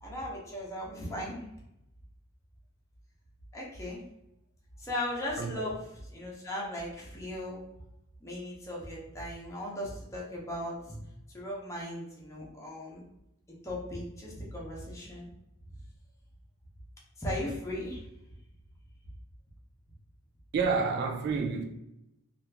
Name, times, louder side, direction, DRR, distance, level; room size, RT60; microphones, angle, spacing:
voice 1, 0.0-1.4 3.5-4.0 4.8-5.8 6.1-7.6 8.2-11.0 11.3-13.0 13.6-15.3 17.2-18.0, left 1 dB, 15° left, 0.8 m, -37 dB
voice 2, 20.5-21.6, right 5 dB, 50° right, 0.3 m, -29 dB
2.9 x 2.4 x 3.4 m
head